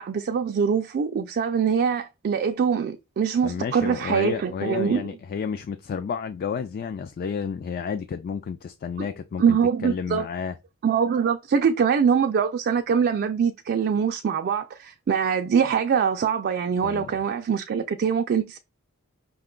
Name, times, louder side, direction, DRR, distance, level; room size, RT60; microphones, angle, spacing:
voice 1, 0.0-5.0 9.0-9.1 9.4-10.2 10.8-18.6, right 7 dB, 45° right, 0.3 m, -23 dB
voice 2, 3.4-10.6 16.8-17.1, left 6 dB, 40° left, 0.3 m, -31 dB
5.1 x 2.2 x 3.6 m
head